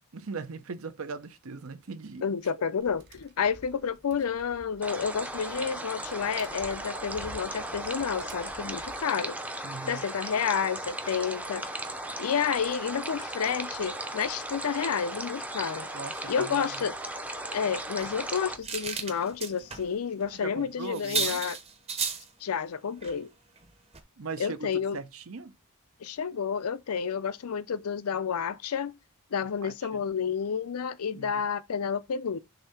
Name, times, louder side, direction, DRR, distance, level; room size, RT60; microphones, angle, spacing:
voice 1, 0.1-2.3 9.6-10.0 15.9-16.8 20.3-21.4 24.2-25.5 29.6-30.0 31.1-31.5, right 4 dB, 70° right, 0.7 m, -39 dB
voice 2, 2.2-9.4 9.9-11.6 12.2-15.9 16.3-16.9 17.5-21.6 22.4-23.3 24.4-25.0 26.0-28.9 29.3-32.4, left 6 dB, 80° left, 0.5 m, -30 dB
Tap, 2.8-9.0, right 1 dB, 50° right, 1.2 m, -49 dB
sound 1, 4.8-18.6, right 1 dB, 5° right, 0.5 m, -37 dB
sound 2, 17.9-19.9 20.2-20.4 20.6-20.7 20.9-22.3 23.0-23.2 23.6-23.7 23.9-24.0, right 5 dB, 30° right, 0.9 m, -34 dB
6.7 x 2.8 x 5.6 m
head